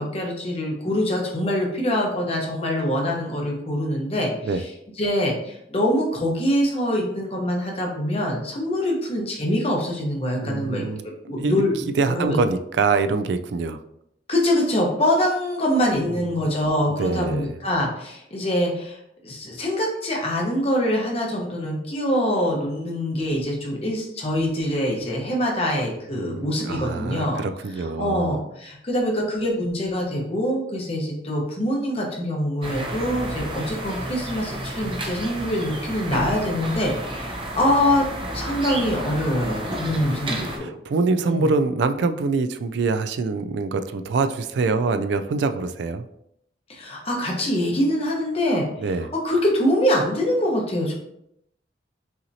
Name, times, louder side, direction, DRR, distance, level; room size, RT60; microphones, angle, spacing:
voice 1, 0.0-4.7 5.0-10.8 11.3-11.8 12.1-12.4 14.3-27.4 27.8-38.0 38.3-40.7 41.2-41.5 46.7-48.7 49.2-50.9, equal, 30° left, -1 dB, 0.9 m, -24 dB
voice 2, 10.4-11.6 12.0-13.8 16.9-17.5 26.2-28.4 39.9-40.1 40.6-46.1 48.8-49.1, right 4 dB, 70° right, 9 dB, 0.3 m, -25 dB
sound 1, 32.6-40.6, right 1 dB, 25° right, 0.7 m, -31 dB
5.7 x 2.8 x 2.7 m, 0.77 s
head